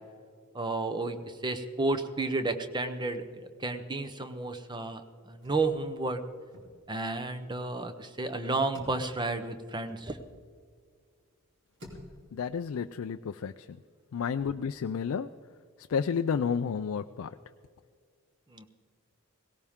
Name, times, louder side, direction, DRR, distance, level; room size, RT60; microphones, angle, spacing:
voice 1, 0.5-5.0 5.3-6.2 6.9-10.2 18.5-18.7, right 2 dB, 20° right, 9 dB, 0.8 m, -32 dB
sound 1, 3.2-3.7 3.9-4.0 4.3-10.7 11.2-12.4, left 1 dB, 55° right, 3.0 m, -53 dB
voice 2, 12.3-13.5 14.1-15.3 15.9-17.3, left 6 dB, 70° left, 8 dB, 0.4 m, -31 dB
18.0 x 17.5 x 3.6 m, 2.1 s
head